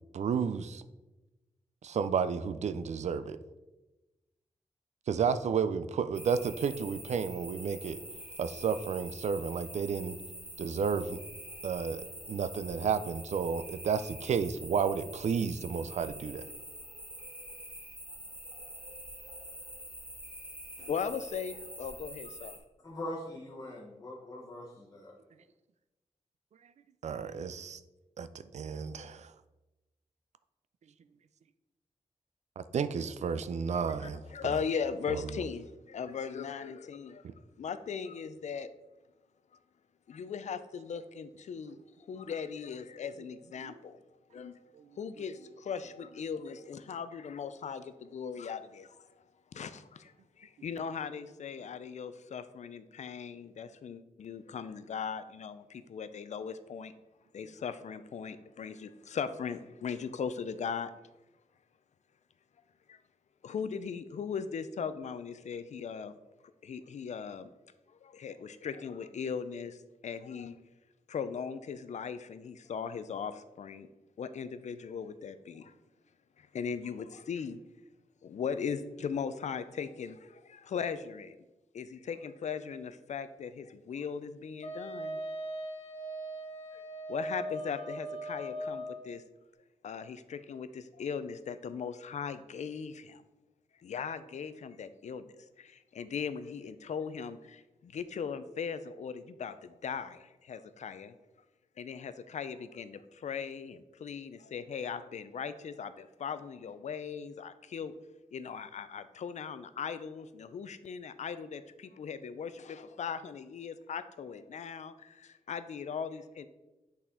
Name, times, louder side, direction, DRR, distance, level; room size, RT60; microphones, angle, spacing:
voice 1, 0.1-0.8 1.8-3.4 5.1-8.0 8.4-10.1 10.6-11.2 11.6-16.4 27.0-27.8 28.2-28.3 28.5-29.3 32.6-34.2 35.1-35.2 43.6-43.7 44.8-44.9, right 6 dB, 65° right, 13 dB, 0.4 m, -32 dB
sound 1, 6.1-22.6, right 1 dB, 10° right, 1.0 m, -46 dB
voice 2, 20.8-22.6 34.0-37.2 37.6-38.7 40.1-44.0 44.3-44.6 45.0-49.0 49.5-50.1 50.4-56.9 57.3-60.9 62.9-63.0 63.4-66.1 66.6-67.5 67.9-70.6 71.1-73.9 74.2-75.7 76.4-77.6 78.2-81.4 81.7-85.2 86.7-86.8 87.1-89.2 89.8-93.2 93.8-101.1 101.8-108.0 108.3-116.5, left 6 dB, 70° left, 12 dB, 0.4 m, -39 dB
voice 3, 22.8-25.1, left 1 dB, 25° left, -2 dB, 1.0 m, -42 dB
Wind instrument woodwind instrument, 84.6-89.0, right 1 dB, 50° left, 1.1 m, -39 dB
8.0 x 4.2 x 3.7 m, 1.1 s
wide cardioid pair, 175°, 13 cm